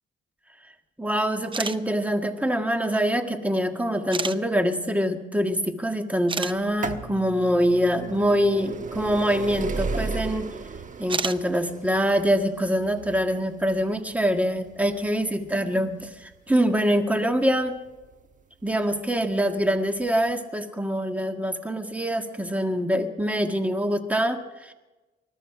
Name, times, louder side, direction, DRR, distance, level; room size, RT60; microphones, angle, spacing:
voice 1, 1.0-10.5 11.0-17.7 18.6-24.7, equal, 5° right, 6 dB, 1.7 m, -24 dB
sound 1, 1.4-1.8 2.8-2.9 4.1-4.4 5.8-5.9 6.3-6.5 9.2-9.3 11.0-11.4, right 4 dB, 25° right, 0.6 m, -29 dB
sound 2, 6.5-18.1 19.0-19.1 20.0-20.1 20.3-20.4, right 4 dB, 40° right, 1.3 m, -35 dB
21.0 x 13.5 x 4.9 m, 1.1 s
cardioid pair, 90°, 20 cm